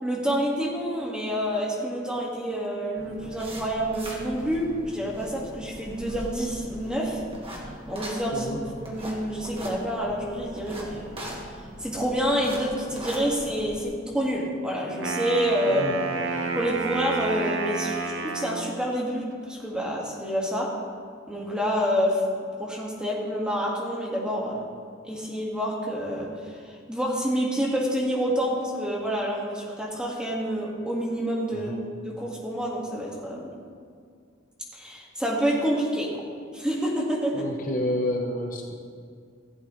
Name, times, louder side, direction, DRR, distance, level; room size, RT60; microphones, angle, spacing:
voice 1, 0.0-7.2 7.9-8.5 8.8-11.1 11.8-15.9 16.5-20.7 21.3-22.2 22.6-24.7 25.0-31.7 32.0-33.5 34.7-36.1 36.5-37.4, equal, 5° right, -4 dB, 1.8 m, -28 dB
sound 1, 3.0-13.8, equal, 30° right, 1.7 m, -40 dB
voice 2, 8.3-8.6 15.6-15.9 31.5-31.8 37.3-38.7, left 1 dB, 40° left, 0 dB, 1.0 m, -30 dB
Wind instrument woodwind instrument, 14.9-18.9, right 4 dB, 65° right, 0.9 m, -30 dB
15.5 x 8.3 x 3.2 m, 2.2 s
head